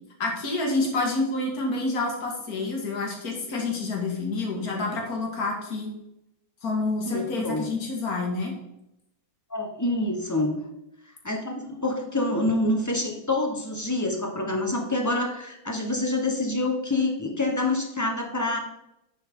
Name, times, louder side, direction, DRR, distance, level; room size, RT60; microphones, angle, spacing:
voice 1, 0.2-5.9 6.6-8.5, left 3 dB, 45° left, 0 dB, 2.4 m, -28 dB
voice 2, 7.1-7.6 9.5-10.6 11.2-18.6, left 2 dB, 15° left, 2 dB, 0.7 m, -26 dB
9.5 x 7.1 x 3.7 m, 0.86 s
omnidirectional pair, 2.4 m